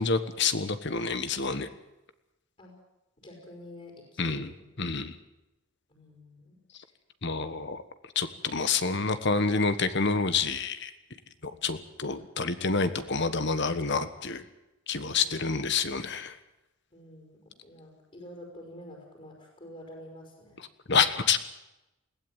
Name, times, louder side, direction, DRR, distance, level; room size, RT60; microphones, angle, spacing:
voice 1, 0.0-1.7 4.2-4.5 4.8-5.1 7.2-7.8 8.1-10.9 11.4-14.4 14.9-16.4 20.6-21.4, left 4 dB, 55° left, 11 dB, 1.4 m, -28 dB
voice 2, 3.2-4.7 5.9-6.6 15.1-15.4 16.9-20.6, left 1 dB, 35° left, 0 dB, 5.0 m, -48 dB
21.0 x 16.5 x 9.1 m, 0.96 s
head